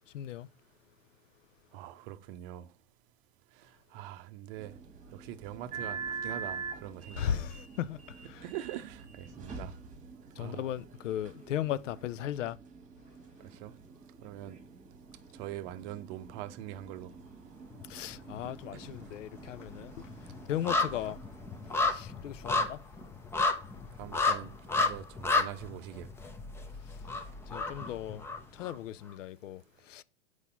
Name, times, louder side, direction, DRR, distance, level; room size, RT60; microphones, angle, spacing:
voice 1, 0.1-0.5 7.1-8.5 10.4-12.6 17.9-20.1 20.5-21.2 21.8-22.9 27.5-28.2 28.5-30.0, left 11 dB, 80° left, 0.5 m, -37 dB
voice 2, 1.7-2.7 3.6-4.7 5.1-7.5 8.4-9.7 10.4-10.6 13.4-13.7 14.2-14.6 15.3-17.1 24.0-26.1, right 13 dB, 45° right, 0.6 m, -43 dB
sound 1, 4.6-21.9, right 5 dB, 20° right, 1.3 m, -46 dB
sound 2, 17.7-18.5 18.8-28.7 29.1-29.2, left 3 dB, 5° left, 0.4 m, -32 dB
4.8 x 4.1 x 5.2 m
hypercardioid pair, 105°, 37 cm